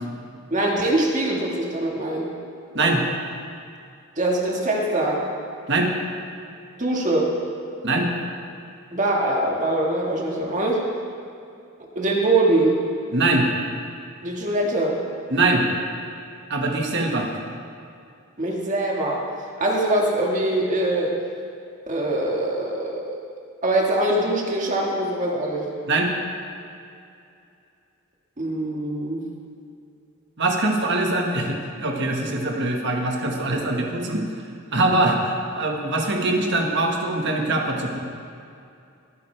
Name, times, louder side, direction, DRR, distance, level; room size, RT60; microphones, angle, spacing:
voice 1, 0.5-2.2 4.2-5.2 6.8-7.3 8.9-10.8 12.0-12.8 14.2-15.0 18.4-19.2 19.6-21.1 21.9-23.2 23.6-25.7 28.4-29.2, right 1 dB, 35° right, -2 dB, 1.7 m, -23 dB
voice 2, 13.1-13.5 15.3-15.6 16.5-17.3 25.9-26.1 30.4-34.2 34.7-38.0, right 2 dB, 55° right, 1 dB, 1.5 m, -22 dB
21.5 x 9.4 x 3.4 m, 2.5 s
head